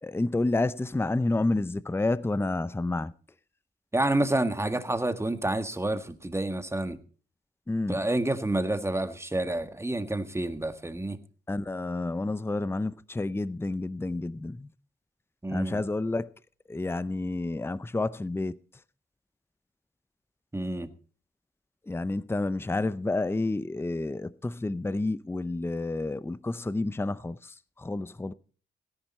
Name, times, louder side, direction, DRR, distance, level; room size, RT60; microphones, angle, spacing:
voice 1, 0.0-3.1 7.7-8.0 11.5-14.7 15.5-16.3 16.7-18.6 21.9-28.3, left 2 dB, 10° left, 0.6 m, -30 dB
voice 2, 3.9-7.0 7.9-11.2 15.4-15.8 20.5-20.9, right 1 dB, 15° right, 1.6 m, -29 dB
17.5 x 10.5 x 4.3 m
cardioid pair, 65°, 19 cm